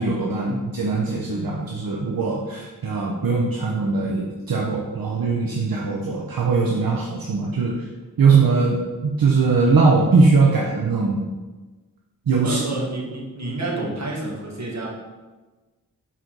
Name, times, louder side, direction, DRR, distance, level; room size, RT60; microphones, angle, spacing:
voice 1, 0.0-7.7 8.2-11.2 12.3-12.6, right 4 dB, 65° right, -2 dB, 0.8 m, -20 dB
voice 2, 12.4-14.9, right 2 dB, 50° right, -3 dB, 1.7 m, -29 dB
6.2 x 4.2 x 3.9 m, 1.2 s
cardioid pair, 50°, 37 cm